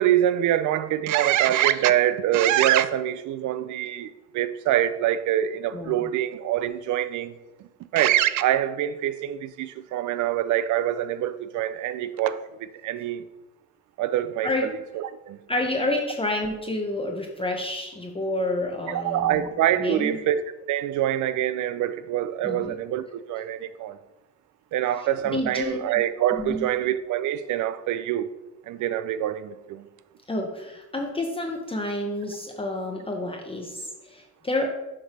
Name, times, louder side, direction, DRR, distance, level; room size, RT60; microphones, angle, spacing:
voice 1, 0.0-7.3 7.9-13.2 14.0-15.4 18.9-20.4 20.7-24.0 24.7-28.3 28.7-29.9, right 12 dB, 75° right, 0.5 m, -25 dB
voice 2, 15.5-19.5 19.8-20.2 22.4-22.7 25.2-25.9 26.4-26.7 30.3-34.7, left 2 dB, 20° left, 0.7 m, -29 dB
7.2 x 3.3 x 5.0 m
cardioid pair, 90°, 30 cm